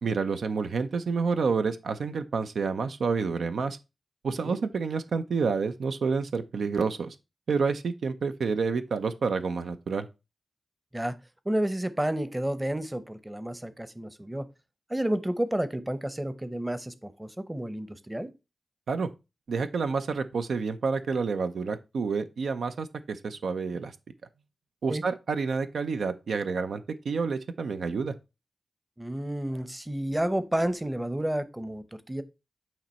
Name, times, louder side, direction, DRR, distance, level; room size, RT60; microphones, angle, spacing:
voice 1, 0.0-3.8 4.2-7.2 7.5-10.1 18.9-19.1 19.5-23.9 24.8-28.1, right 5 dB, 90° right, 0.5 m, -29 dB
voice 2, 11.5-14.5 14.9-18.3 24.9-25.0 29.0-32.2, right 1 dB, 15° right, 0.7 m, -30 dB
8.8 x 3.0 x 4.2 m
wide cardioid pair, 70°, 0 cm